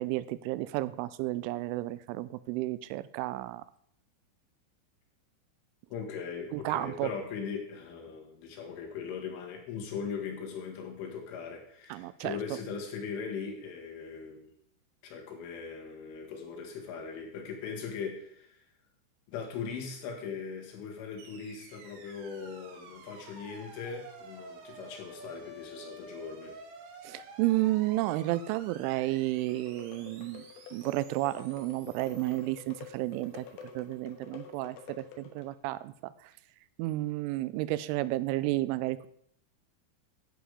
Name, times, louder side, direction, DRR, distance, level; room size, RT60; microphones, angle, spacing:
voice 1, 0.0-3.6 6.5-7.1 11.9-12.6 27.0-30.5 30.7-36.3 36.8-39.1, right 17 dB, 90° right, 16 dB, 3.0 m, -32 dB
voice 2, 5.9-14.5 15.0-18.6 19.3-26.5, left 6 dB, 85° left, 1 dB, 4.3 m, -39 dB
sound 1, 21.2-33.4, right 2 dB, 75° right, 3.9 m, -51 dB
sound 2, 29.5-35.6, left 8 dB, 70° left, 2.6 m, -49 dB
10.0 x 8.1 x 4.9 m, 0.68 s
omnidirectional pair, 5.4 m